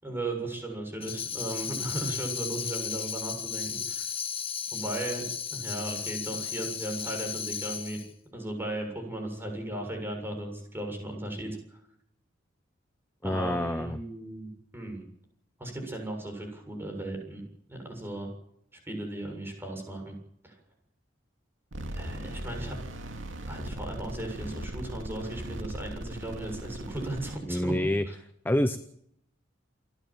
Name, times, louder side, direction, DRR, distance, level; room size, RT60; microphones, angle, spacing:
voice 1, 0.0-4.1 4.7-5.2 5.5-8.0 8.3-11.8 13.2-15.0 15.6-17.4 17.7-18.3 18.7-20.1 20.4-20.6 21.9-22.8 23.5-28.1, right 1 dB, 10° right, 2 dB, 7.3 m, -36 dB
Tambourine, 1.0-8.1, left 8 dB, 30° left, 1.5 m, -35 dB
voice 2, 13.2-14.0 27.5-28.1 28.4-28.8, left 1 dB, 10° left, 11 dB, 0.7 m, -27 dB
sound 1, 21.7-27.4, right 1 dB, 80° right, 2.6 m, -39 dB
29.0 x 10.5 x 9.1 m, 0.72 s
head